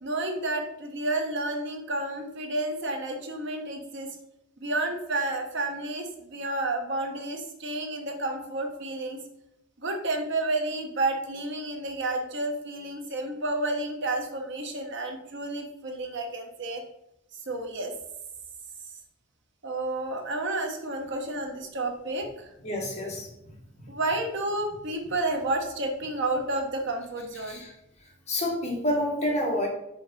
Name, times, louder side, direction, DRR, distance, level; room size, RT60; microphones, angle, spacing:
voice 1, 0.0-4.1 4.6-9.2 9.8-16.8 17.5-17.9 19.6-22.5 23.9-27.6, right 2 dB, 60° right, 3 dB, 1.0 m, -30 dB
voice 2, 22.6-23.3 23.8-23.9 27.3-27.7 28.0-29.7, left 1 dB, 35° left, -2 dB, 1.6 m, -29 dB
5.2 x 5.0 x 4.0 m, 0.82 s
head